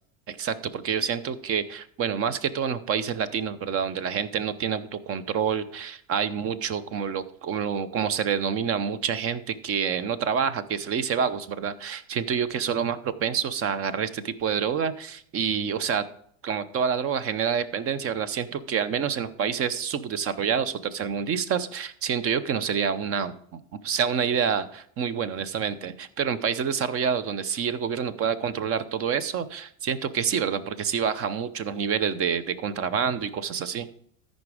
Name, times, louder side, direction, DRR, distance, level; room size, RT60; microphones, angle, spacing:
voice 1, 0.3-16.0 16.4-33.9, right 7 dB, 35° right, 15 dB, 0.7 m, -27 dB
13.5 x 5.2 x 4.9 m, 0.64 s
supercardioid pair, 115°, 40 cm